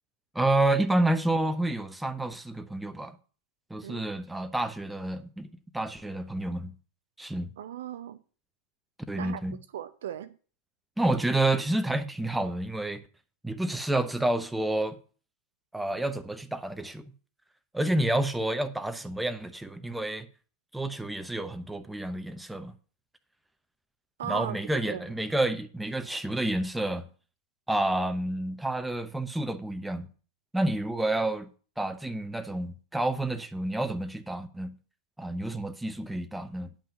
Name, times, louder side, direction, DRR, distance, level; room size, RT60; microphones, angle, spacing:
voice 1, 0.3-3.2 3.7-5.5 5.7-6.7 7.2-7.5 9.1-9.6 11.0-13.0 13.4-15.0 15.7-17.0 17.7-20.3 20.7-22.7 24.2-27.0 27.7-30.1 30.5-31.5 31.8-34.7 35.2-36.7, right 1 dB, 5° right, 0.8 m, -29 dB
voice 2, 7.6-8.2 9.2-9.4 9.7-10.4 24.2-24.6 24.8-25.0, right 10 dB, 60° right, 0.6 m, -37 dB
10.0 x 5.6 x 6.4 m
figure-of-eight pair, 90°, 0 cm